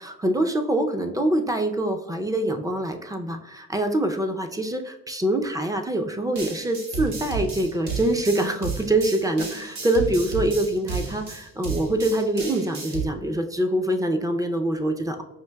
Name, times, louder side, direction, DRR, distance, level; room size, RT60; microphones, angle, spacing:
voice 1, 0.0-15.2, right 1 dB, 10° right, 6 dB, 0.4 m, -25 dB
sound 1, 6.4-13.0, right 5 dB, 65° right, 1.2 m, -32 dB
5.7 x 2.6 x 2.2 m, 0.98 s
cardioid pair, 90°, 30 cm